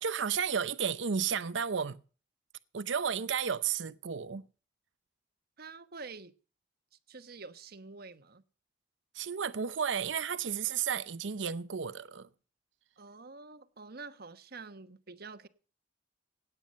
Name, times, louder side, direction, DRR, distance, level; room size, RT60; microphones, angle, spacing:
voice 1, 0.0-2.0 2.7-4.4 9.1-12.3, right 7 dB, 90° right, 0.7 m, -32 dB
voice 2, 5.6-6.3 7.1-8.4 13.0-15.5, right 4 dB, 55° right, 1.1 m, -47 dB
17.0 x 9.2 x 5.3 m
head